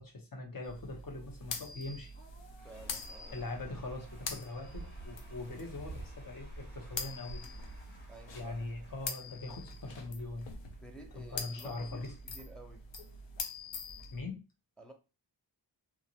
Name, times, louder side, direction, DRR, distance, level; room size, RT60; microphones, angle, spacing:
voice 1, 0.0-2.2 3.3-7.4 8.3-10.5 11.2-12.1 14.1-14.4, left 2 dB, 50° left, 0.9 m, -42 dB
sound 1, 0.6-14.2, left 4 dB, 85° left, 0.6 m, -45 dB
Cheering / Applause / Crowd, 2.1-10.8, equal, 25° left, 1.2 m, -61 dB
voice 2, 2.6-3.5 8.1-8.7 10.8-12.8 14.8-14.9, right 1 dB, ahead, 0.6 m, -53 dB
sound 2, 2.8-7.8, right 2 dB, 40° right, 0.4 m, -49 dB
2.9 x 2.4 x 2.8 m
wide cardioid pair, 105°, 43 cm